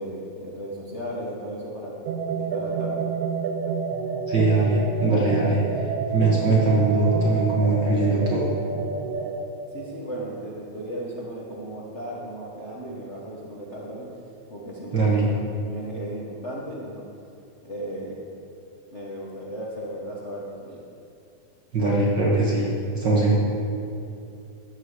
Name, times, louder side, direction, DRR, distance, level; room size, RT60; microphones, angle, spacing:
voice 1, 0.0-2.0 2.4-3.0 9.7-14.1 14.5-17.0 17.6-18.2 18.9-20.8, right 1 dB, 85° left, -5 dB, 0.6 m, -35 dB
sound 1, 2.0-9.4, right 5 dB, 80° right, 2.2 m, -29 dB
voice 2, 4.3-5.6 6.1-8.5 14.9-15.2 21.7-22.7 22.9-23.4, right 3 dB, 45° right, -5 dB, 1.7 m, -21 dB
13.0 x 8.3 x 4.9 m, 2.6 s
omnidirectional pair, 3.5 m